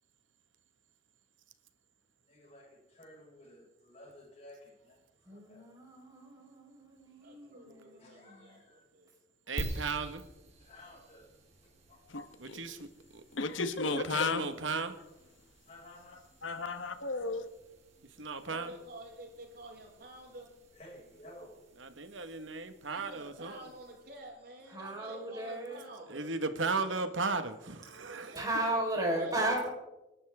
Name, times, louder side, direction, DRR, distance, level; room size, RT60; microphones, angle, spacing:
voice 1, 2.2-5.7 8.0-8.8 10.6-12.0 15.7-16.2 20.7-21.6, left 1 dB, 35° left, 6.1 m, -55 dB
voice 2, 5.3-8.5 24.7-25.8 28.3-29.7, right 1 dB, 20° right, 4.5 m, -35 dB
voice 3, 7.2-9.1 18.5-20.5 22.9-26.3 28.3-28.7 29.1-29.4, right 1 dB, 55° right, 6.6 m, -49 dB
voice 4, 9.5-10.3 12.4-13.2 13.9-14.9 18.0-18.7 21.8-23.7 26.1-28.4, right 4 dB, 85° right, 1.6 m, -36 dB
sound 1, 9.6-24.3, right 1 dB, 35° right, 2.8 m, -49 dB
voice 5, 12.1-12.6 13.3-14.5 15.1-15.5 16.4-17.5, left 3 dB, 90° left, 1.3 m, -34 dB
29.0 x 12.0 x 3.6 m
head